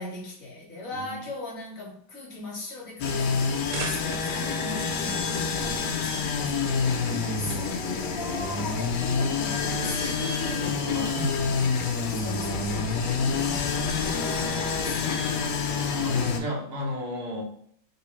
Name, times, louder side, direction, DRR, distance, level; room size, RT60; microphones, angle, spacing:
voice 1, 0.0-10.9 12.2-15.0, left 2 dB, 55° left, -3 dB, 1.1 m, -39 dB
sound 1, 3.0-16.4, left 5 dB, 75° left, 1.0 m, -27 dB
sound 2, 3.4-4.6, right 5 dB, 85° right, 1.5 m, -37 dB
voice 2, 7.1-7.6 10.8-11.5 12.7-13.2 15.8-17.4, equal, 50° right, -1 dB, 1.1 m, -34 dB
3.4 x 3.1 x 3.0 m, 0.65 s
omnidirectional pair, 2.3 m